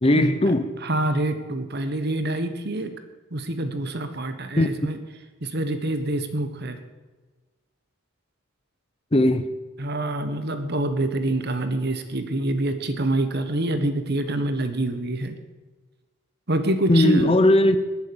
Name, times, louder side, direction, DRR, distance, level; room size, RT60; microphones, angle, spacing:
voice 1, 0.0-0.7 4.6-4.7 9.1-9.5 16.9-17.8, left 1 dB, 25° left, 0.7 m, -18 dB
voice 2, 0.8-2.9 3.3-5.0 5.4-6.8 9.8-15.4 16.5-17.3, right 1 dB, 50° right, 1.4 m, -26 dB
19.5 x 7.7 x 7.2 m
head